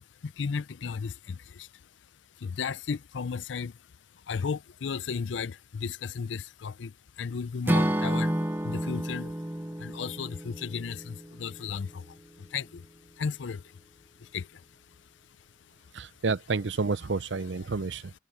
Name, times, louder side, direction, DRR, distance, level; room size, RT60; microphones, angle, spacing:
voice 1, 0.0-1.7 2.4-3.8 4.3-8.3 8.6-9.3 9.8-12.9 13.2-13.8 14.2-14.6, left 6 dB, 80° left, 0.5 m, -35 dB
Acoustic guitar / Strum, 7.7-11.8, right 1 dB, 10° right, 0.8 m, -30 dB
voice 2, 15.9-18.1, right 4 dB, 75° right, 0.7 m, -30 dB
head